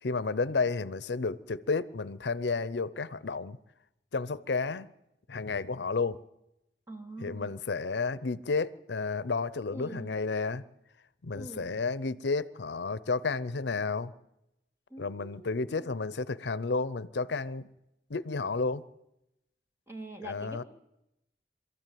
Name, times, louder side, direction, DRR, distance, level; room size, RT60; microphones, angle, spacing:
voice 1, 0.0-3.6 4.1-4.9 5.3-6.2 7.2-10.6 11.2-14.1 15.0-17.7 18.1-18.8 20.2-20.6, left 4 dB, 80° left, 0.7 m, -31 dB
voice 2, 6.9-7.6 9.7-10.1 11.3-11.8 14.9-15.9 19.9-20.6, right 1 dB, 15° right, 2.0 m, -44 dB
23.5 x 14.0 x 9.3 m
head